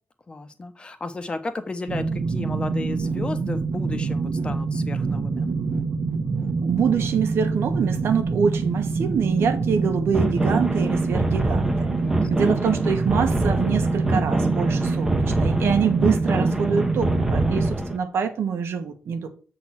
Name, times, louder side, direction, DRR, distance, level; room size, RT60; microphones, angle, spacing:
voice 1, 0.3-5.5 12.0-12.3, left 2 dB, 25° left, 1.0 m, -33 dB
sound 1, 1.9-17.7, right 4 dB, 65° right, 1.3 m, -26 dB
voice 2, 6.6-12.0 12.3-19.3, right 6 dB, 85° right, 1.3 m, -25 dB
sound 2, 10.1-18.0, right 1 dB, 10° right, 0.8 m, -25 dB
7.6 x 4.2 x 5.7 m
wide cardioid pair, 155°, 4 cm